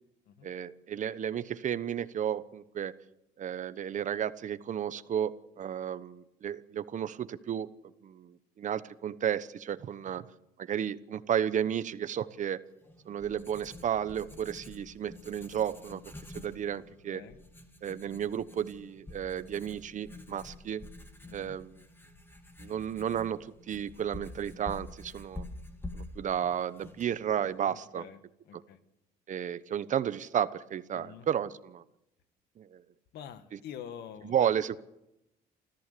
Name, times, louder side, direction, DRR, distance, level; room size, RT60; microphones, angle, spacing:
voice 1, 0.4-2.9 3.4-7.7 8.0-10.2 10.6-12.6 13.1-16.0 16.3-17.2 17.8-20.8 21.3-21.8 22.6-25.4 25.9-28.0 29.3-31.8 32.6-32.8 34.2-34.8, right 9 dB, 45° right, 14 dB, 1.1 m, -33 dB
Writing, 12.8-27.6, left 2 dB, 15° left, 3.0 m, -48 dB
voice 2, 16.9-17.4 21.2-21.6 27.7-28.2 28.5-28.8 30.9-31.3 33.1-34.5, left 9 dB, 75° left, 10 dB, 1.8 m, -46 dB
28.0 x 14.5 x 6.9 m, 0.87 s
cardioid pair, 110°, 17 cm